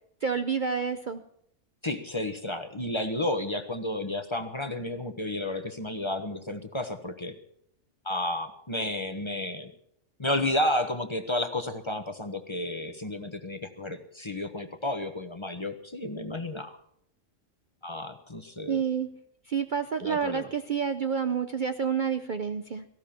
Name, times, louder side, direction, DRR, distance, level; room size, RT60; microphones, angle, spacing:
voice 1, 0.2-1.2 18.7-19.1 19.5-22.8, right 6 dB, 45° right, 9 dB, 0.7 m, -29 dB
voice 2, 1.8-7.3 8.0-9.7 10.2-16.8 17.8-18.8 20.0-20.5, left 1 dB, 25° left, 8 dB, 1.2 m, -32 dB
18.0 x 15.5 x 4.4 m, 0.69 s
omnidirectional pair, 1.4 m